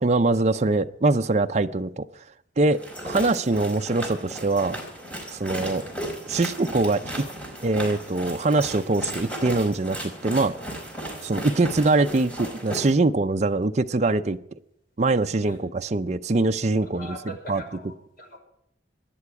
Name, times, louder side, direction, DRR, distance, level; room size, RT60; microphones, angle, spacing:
voice 1, 0.0-2.0 2.6-4.8 5.3-5.8 6.3-7.0 7.6-10.5 11.2-14.4 15.0-17.2 17.5-17.6, right 2 dB, 40° right, 7 dB, 0.6 m, -23 dB
sound 1, 2.7-12.9, right 1 dB, 5° left, 4.6 m, -35 dB
voice 2, 16.8-18.4, equal, 50° left, 2 dB, 5.5 m, -41 dB
25.0 x 10.5 x 4.8 m, 0.77 s
head